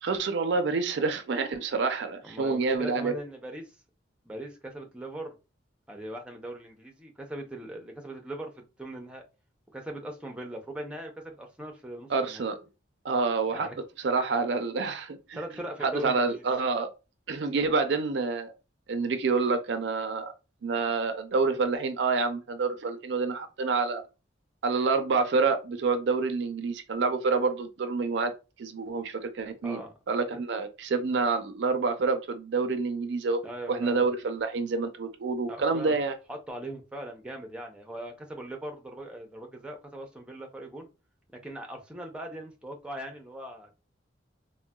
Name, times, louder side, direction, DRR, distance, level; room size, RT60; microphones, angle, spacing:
voice 1, 0.0-3.1 12.1-12.6 13.0-13.7 14.0-15.4 15.8-16.9 17.3-18.5 18.9-20.3 20.6-24.0 24.6-28.3 28.6-29.8 30.1-33.4 33.7-36.2, right 4 dB, 60° right, 0.4 m, -27 dB
voice 2, 2.2-3.7 4.2-5.3 5.9-9.2 9.7-12.4 13.5-13.8 15.3-16.4 29.6-29.9 30.3-30.4 33.4-34.0 35.5-35.9 36.3-40.9 41.4-43.7, right 1 dB, 5° right, 0.5 m, -40 dB
3.7 x 2.1 x 2.2 m
head